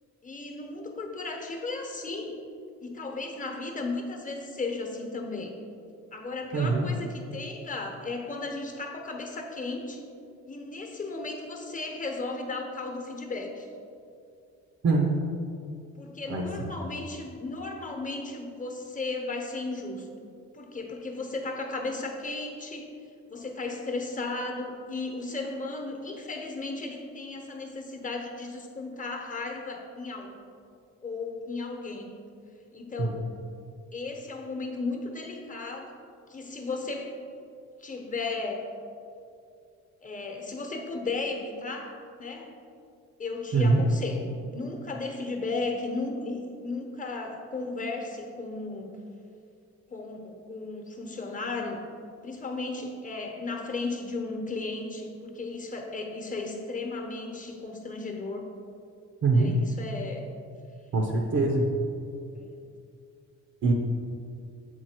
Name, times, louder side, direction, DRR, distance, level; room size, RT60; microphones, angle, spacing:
voice 1, 0.2-2.3 2.8-5.5 6.1-10.0 10.5-13.7 16.0-20.1 20.5-22.9 23.3-30.4 31.0-32.1 32.7-33.3 33.9-35.9 36.3-37.1 37.8-38.7 40.0-42.5 43.2-48.9 49.9-51.8 52.2-58.5 59.3-60.3 62.3-62.5, left 3 dB, 25° left, 3 dB, 1.0 m, -35 dB
voice 2, 6.5-6.9 14.8-15.1 16.3-16.7 33.0-33.3 43.5-43.8 59.2-59.5 60.9-61.6 63.6-63.7, right 3 dB, 55° right, 1 dB, 0.8 m, -24 dB
7.3 x 4.6 x 4.5 m, 2.5 s
cardioid pair, 90°, 30 cm